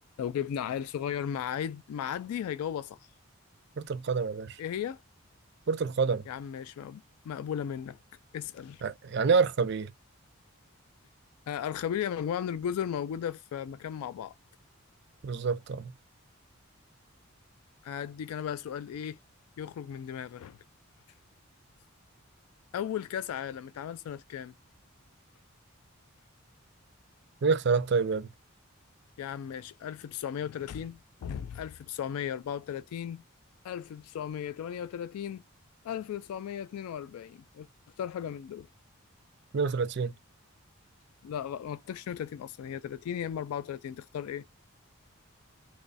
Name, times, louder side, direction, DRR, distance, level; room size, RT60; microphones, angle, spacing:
voice 1, 0.2-3.0 4.6-5.0 6.3-8.0 8.3-8.8 11.5-14.3 17.8-19.2 19.6-20.6 22.7-24.5 29.2-33.2 33.6-35.4 35.8-37.7 38.0-38.7 41.2-44.5, left 9 dB, 90° left, 0.3 m, -36 dB
voice 2, 3.8-4.6 5.7-6.2 8.8-9.9 15.2-15.9 27.4-28.3 39.5-40.1, right 5 dB, 50° right, 0.4 m, -27 dB
3.0 x 2.2 x 3.9 m
head